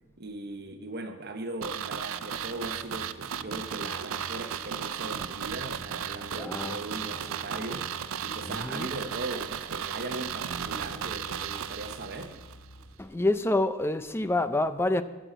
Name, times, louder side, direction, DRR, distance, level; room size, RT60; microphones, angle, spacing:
voice 1, 0.2-7.9 8.2-12.4, right 2 dB, 50° right, 1.0 m, -39 dB
sound 1, 1.6-12.6 12.8-12.9, right 8 dB, 75° right, 0.5 m, -35 dB
sound 2, 2.4-12.9, left 1 dB, 70° left, 1.9 m, -53 dB
voice 2, 6.3-6.8 8.4-8.9 13.0-15.0, left 2 dB, 10° left, 0.4 m, -27 dB
9.8 x 6.5 x 7.9 m
head